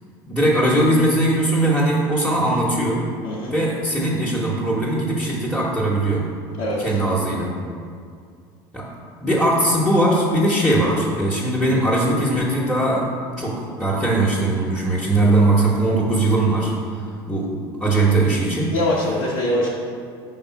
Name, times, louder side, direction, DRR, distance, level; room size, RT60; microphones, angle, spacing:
voice 1, 0.2-3.0 3.5-6.3 6.8-7.5 8.7-8.9 9.2-16.7 17.3-17.5 17.8-18.7, right 1 dB, ahead, -7 dB, 1.1 m, -20 dB
voice 2, 6.6-7.0 18.7-19.7, left 1 dB, 65° left, -7 dB, 1.1 m, -23 dB
5.2 x 3.8 x 5.8 m, 2.3 s
supercardioid pair, 90°, 12 cm